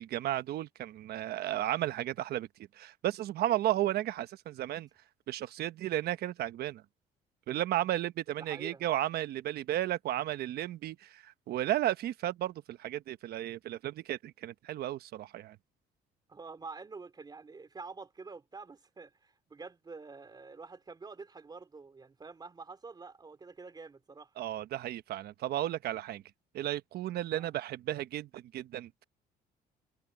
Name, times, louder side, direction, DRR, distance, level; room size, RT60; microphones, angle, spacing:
voice 1, 0.0-2.5 2.7-4.9 5.3-6.8 7.5-15.6 24.4-26.2 26.5-29.0, right 13 dB, 70° right, 1.2 m, -34 dB
voice 2, 8.4-8.8 16.3-24.3 27.3-27.5, right 4 dB, 25° right, 3.3 m, -47 dB
cardioid pair, 110°, 17 cm